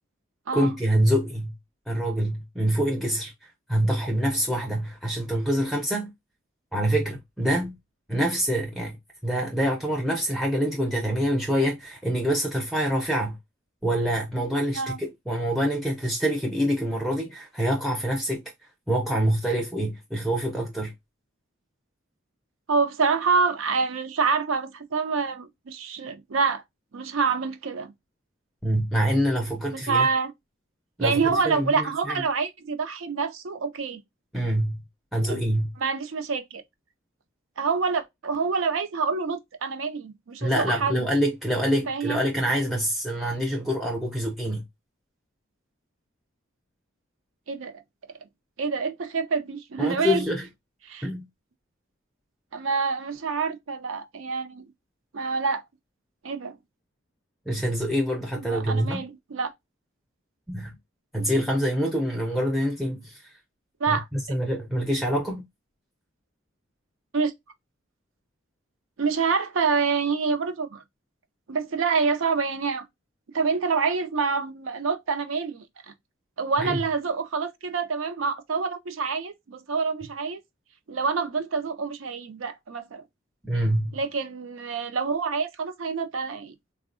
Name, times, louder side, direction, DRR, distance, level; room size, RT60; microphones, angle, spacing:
voice 1, 0.5-1.5 1.9-6.1 6.7-7.8 8.1-9.0 9.2-13.4 13.8-18.4 18.9-20.9 28.6-30.1 31.0-32.2 34.3-34.8 35.1-35.7 40.4-44.6 49.8-50.5 51.0-51.3 57.5-59.0 60.5-60.8 61.1-63.3 63.9-65.4 76.6-76.8 83.4-84.0, equal, ahead, 0.4 m, -26 dB
voice 2, 22.7-26.6 26.9-27.9 29.7-30.3 31.0-34.0 35.3-35.4 35.8-36.6 37.6-41.0 41.9-42.2 47.5-47.7 48.6-50.2 50.9-51.1 52.5-54.6 55.1-55.6 56.2-56.6 58.5-59.5 61.2-61.3 63.8-64.1 67.1-67.3 69.0-70.8 71.5-72.9 73.3-75.6 76.4-80.4 80.9-83.0 83.9-86.5, right 5 dB, 80° right, 0.5 m, -27 dB
3.5 x 2.1 x 2.4 m
head